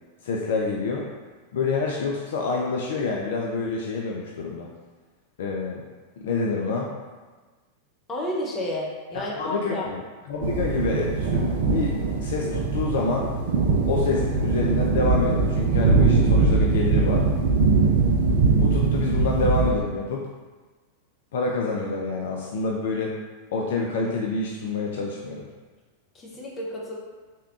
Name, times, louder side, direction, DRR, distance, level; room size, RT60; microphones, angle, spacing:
voice 1, 0.2-1.1 1.5-4.7 5.4-5.8 6.2-6.9 9.1-10.0 10.3-11.9 12.2-13.3 13.9-17.3 18.5-20.3 21.3-23.1 23.5-25.5, left 3 dB, 55° left, -1 dB, 0.3 m, -27 dB
voice 2, 8.1-9.9 26.1-26.9, left 1 dB, 20° left, -3 dB, 0.7 m, -31 dB
sound 1, 10.4-19.7, right 4 dB, 55° right, 0.4 m, -21 dB
3.3 x 2.8 x 2.3 m, 1.3 s
figure-of-eight pair, 90°, 0 cm